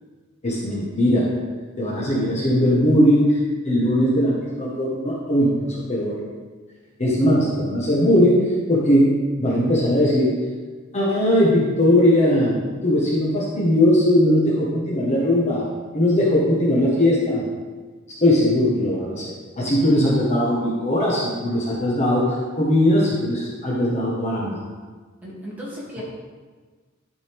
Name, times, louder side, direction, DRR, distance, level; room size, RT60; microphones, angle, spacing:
voice 1, 0.4-1.3 1.8-3.4 3.6-6.1 7.0-10.3 10.9-15.6 15.9-17.4 18.2-19.2 19.6-24.6, left 1 dB, 35° left, -5 dB, 1.4 m, -19 dB
voice 2, 25.2-26.0, equal, 10° right, -8 dB, 2.5 m, -35 dB
11.5 x 5.2 x 3.5 m, 1.4 s
head